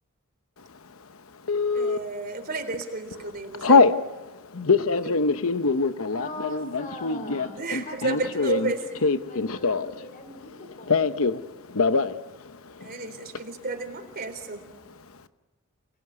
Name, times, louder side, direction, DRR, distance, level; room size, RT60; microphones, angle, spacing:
Telephone, 1.5-2.0 2.6-2.8 3.1-4.0 4.5-10.0 10.3-11.4 11.7-12.2 12.5-12.6 12.8-13.4, left 4 dB, 75° left, 1.0 m, -23 dB
voice 1, 1.7-3.8 5.0-5.2 7.6-8.8 12.8-14.6, right 3 dB, 45° right, 6 dB, 3.8 m, -32 dB
voice 2, 6.1-11.1, left 2 dB, 40° left, 6 dB, 4.3 m, -41 dB
29.0 x 21.0 x 9.7 m, 1.2 s
head